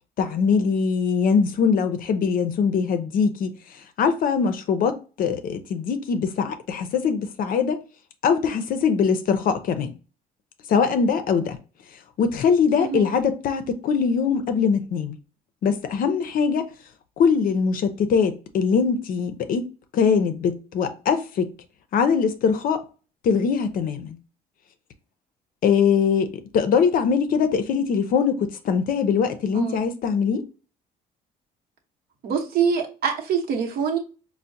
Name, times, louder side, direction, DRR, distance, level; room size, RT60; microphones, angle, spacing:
voice 1, 0.2-3.5 4.0-7.8 8.2-9.9 10.7-11.6 12.2-15.2 15.6-16.7 17.2-19.7 19.9-21.5 21.9-22.8 23.2-24.2 25.6-30.5, left 6 dB, 55° left, 0.5 m, -22 dB
voice 2, 29.5-29.9 32.2-34.0, right 6 dB, 65° right, 0.9 m, -25 dB
4.4 x 2.1 x 2.6 m
cardioid pair, 110°, 17 cm